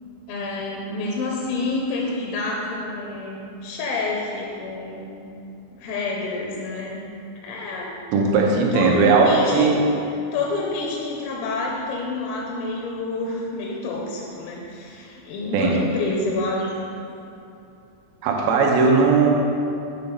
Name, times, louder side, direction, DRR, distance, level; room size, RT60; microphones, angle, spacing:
voice 1, 0.3-5.3 5.8-7.0 7.4-8.0 8.7-9.8 10.3-16.9, left 3 dB, 85° left, -2 dB, 3.4 m, -28 dB
voice 2, 8.1-9.8 15.5-15.8 18.2-19.3, right 4 dB, 80° right, 0 dB, 3.0 m, -18 dB
8.7 x 3.7 x 5.3 m, 2.7 s
omnidirectional pair, 5.8 m